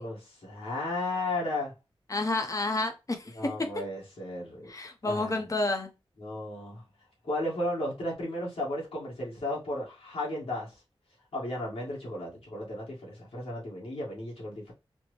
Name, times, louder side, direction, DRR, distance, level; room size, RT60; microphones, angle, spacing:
voice 1, 0.0-1.7 3.3-4.7 5.0-5.4 6.2-6.8 7.2-10.7 11.3-14.7, left 1 dB, 90° left, 1.8 m, -34 dB
voice 2, 2.1-3.5 4.7-5.9, left 2 dB, 35° left, 0.7 m, -30 dB
4.3 x 2.1 x 3.2 m
wide cardioid pair, 90°, 10 cm